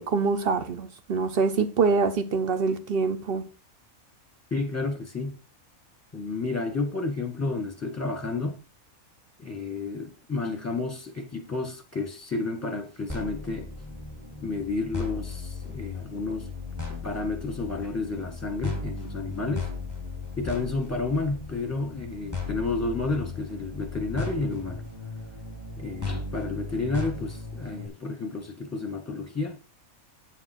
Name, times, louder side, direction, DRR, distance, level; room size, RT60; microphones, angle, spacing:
voice 1, 0.0-3.5, right 4 dB, 45° right, 1.1 m, -25 dB
voice 2, 4.5-5.4 6.1-8.6 9.4-13.7 14.4-16.5 17.0-19.7 20.4-24.8 25.8-29.6, left 3 dB, 10° left, 1.6 m, -31 dB
sound 1, 13.1-27.9, left 3 dB, 10° right, 1.9 m, -36 dB
8.1 x 7.4 x 4.4 m
omnidirectional pair, 1.5 m